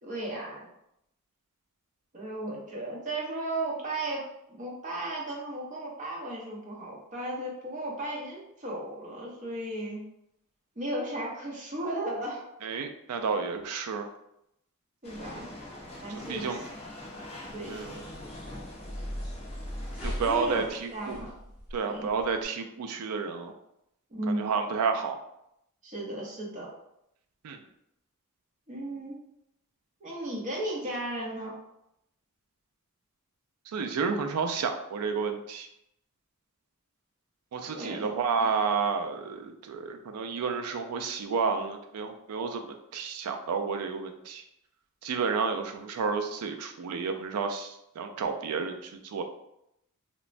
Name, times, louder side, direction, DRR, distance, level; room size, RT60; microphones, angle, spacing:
voice 1, 0.0-0.7 2.1-10.0 10.8-12.4 15.0-15.5 16.0-16.6 17.5-17.7 20.2-20.7 20.9-21.3 21.9-22.1 24.1-24.5 25.8-26.7 28.7-29.2 30.0-31.5 37.6-38.0, right 1 dB, 35° right, -3 dB, 0.7 m, -35 dB
voice 2, 12.6-14.1 16.3-16.6 17.7-18.0 20.0-21.2 21.7-23.5 24.3-25.2 27.4-27.6 33.7-35.7 37.5-44.4 45.0-49.2, right 5 dB, 85° right, 6 dB, 0.4 m, -31 dB
sound 1, 15.0-20.7, left 1 dB, 30° left, 0.5 m, -44 dB
sound 2, 17.5-22.5, equal, ahead, 0.8 m, -40 dB
3.1 x 2.0 x 2.5 m, 0.80 s
head